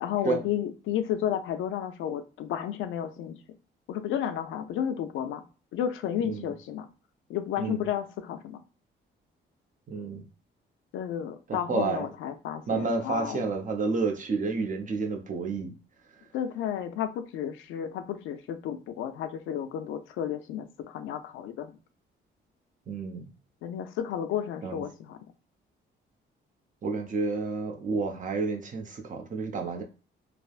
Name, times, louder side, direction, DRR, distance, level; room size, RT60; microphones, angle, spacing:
voice 1, 0.0-3.4 3.9-5.4 5.7-6.9 7.3-8.6 10.9-13.4 16.3-21.8 23.6-25.3, left 9 dB, 80° left, 0.4 m, -32 dB
voice 2, 9.9-10.2 11.5-12.1 12.7-15.7 22.9-23.3 24.6-24.8 26.8-29.8, right 4 dB, 40° right, 0.7 m, -30 dB
3.2 x 2.0 x 2.4 m
cardioid pair, 90°, 20 cm